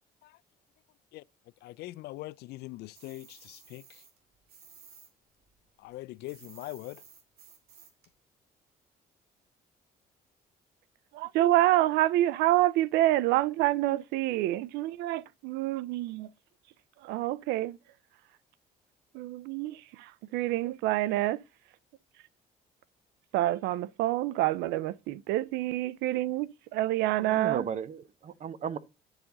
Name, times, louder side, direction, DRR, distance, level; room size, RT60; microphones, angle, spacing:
voice 1, 1.6-4.0 5.8-7.0, left 18 dB, 75° left, 0.4 m, -42 dB
sound 1, 2.9-5.1 5.4-8.1, right 6 dB, 70° right, 2.0 m, -55 dB
voice 2, 11.1-16.3 17.0-17.8 19.1-21.4 23.3-27.6, right 15 dB, 85° right, 0.4 m, -27 dB
voice 3, 27.2-28.8, right 8 dB, 45° right, 0.7 m, -35 dB
9.8 x 4.8 x 3.8 m
cardioid pair, 110°, 17 cm